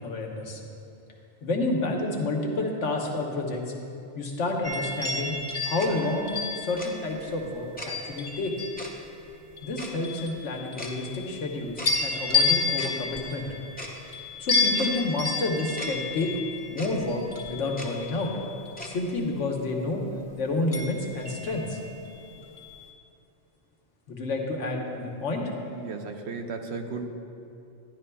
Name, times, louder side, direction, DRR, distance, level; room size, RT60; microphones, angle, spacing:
voice 1, 0.0-0.6 1.4-3.6 4.1-5.3 5.6-8.5 9.6-13.5 14.4-16.3 16.7-17.2 17.5-18.3 18.8-20.0 20.3-21.8 24.1-25.5, left 2 dB, 80° left, 1 dB, 1.3 m, -29 dB
sound 1, 4.6-9.0 9.6-11.5 11.9-18.8 20.7-22.1 22.6-22.8, left 4 dB, 50° left, 1.4 m, -31 dB
Tick-tock, 5.8-5.9 6.8-6.9 7.8-7.9 8.8-8.9 9.8-9.9 10.8-10.9 11.8-11.9 12.8-12.9 13.8-13.9 14.8-14.9 15.8-15.9 16.8-16.9 17.8-17.9 18.8-18.9, left 1 dB, 10° left, 0.7 m, -38 dB
voice 2, 25.7-27.1, right 4 dB, 70° right, 5 dB, 0.9 m, -35 dB
11.5 x 11.0 x 2.3 m, 2.6 s
omnidirectional pair, 1.2 m